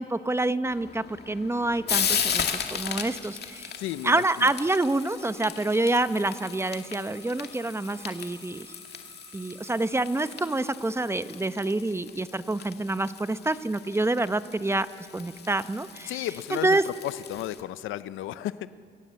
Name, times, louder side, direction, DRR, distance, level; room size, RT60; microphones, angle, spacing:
voice 1, 0.0-3.7 4.0-8.7 9.3-14.9 15.1-16.2 16.5-16.8, right 2 dB, 15° right, 12 dB, 0.9 m, -27 dB
Frying (food), 0.7-17.6, left 7 dB, 55° left, 2.1 m, -36 dB
sound 1, 3.5-12.4, left 3 dB, 25° left, 3.7 m, -51 dB
voice 2, 3.8-4.5 16.1-16.8 17.0-18.7, left 13 dB, 85° left, 14 dB, 0.6 m, -33 dB
28.0 x 17.0 x 7.7 m, 2.3 s
cardioid pair, 90°, 20 cm